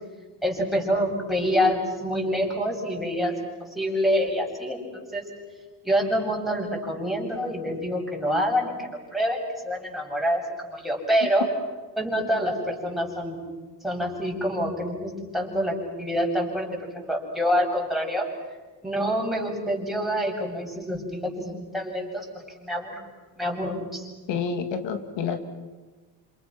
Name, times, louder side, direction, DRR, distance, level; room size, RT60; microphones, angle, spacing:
voice 1, 0.4-5.2 5.8-11.5 12.0-13.4 13.8-18.3 18.8-23.0 23.4-24.1, equal, ahead, -2 dB, 7.9 m, -27 dB
voice 2, 24.3-25.4, left 6 dB, 80° left, 7 dB, 2.9 m, -28 dB
29.0 x 28.0 x 6.2 m, 1.3 s
cardioid pair, 100°, 43 cm